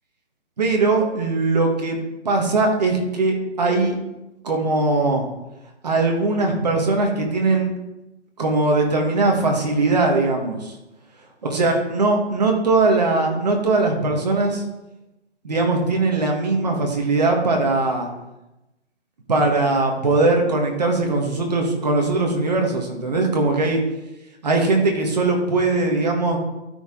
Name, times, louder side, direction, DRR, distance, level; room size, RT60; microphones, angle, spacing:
voice 1, 0.6-2.0 2.2-4.0 4.4-5.3 5.8-7.7 8.4-10.7 11.4-14.6 15.4-18.1 19.3-23.8 24.4-26.4, right 3 dB, 35° right, 1 dB, 1.5 m, -20 dB
12.5 x 4.7 x 3.8 m, 0.97 s
hypercardioid pair, 175°, 34 cm